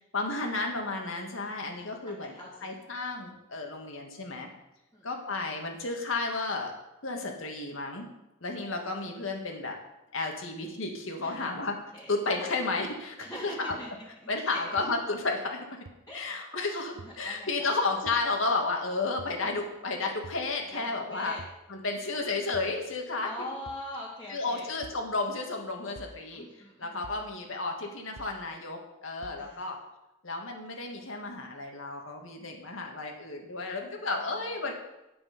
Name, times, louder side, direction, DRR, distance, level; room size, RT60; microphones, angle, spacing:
voice 1, 0.1-2.4 2.6-4.5 5.0-6.7 7.0-8.1 8.4-9.8 10.1-11.7 12.1-13.2 13.4-13.8 14.3-15.8 16.1-21.4 21.7-23.5 24.3-26.4 26.8-29.8 30.2-34.7, left 3 dB, 75° left, 2 dB, 2.0 m, -32 dB
voice 2, 1.4-1.8 2.1-2.7 4.9-5.1 11.2-11.5 11.9-12.1 13.2-13.9 14.5-14.6 16.1-16.2 16.5-16.7 17.0-17.7 20.7-20.8 21.1-21.4 23.2-24.7 26.3-27.1 29.4-29.7 34.1-34.7, left 1 dB, 15° left, -8 dB, 2.2 m, -43 dB
sound 1, 13.7-13.8 14.8-14.9 15.9-16.0 17.0-17.1 18.1-18.2 19.2-19.4 20.2-20.5 21.4-21.6 22.5-22.8 23.7-23.9 24.8-25.0 26.0-26.2 27.0-27.3 28.2-28.4 29.2-29.4, right 3 dB, 65° right, 0.7 m, -47 dB
9.7 x 9.0 x 5.2 m, 0.92 s
head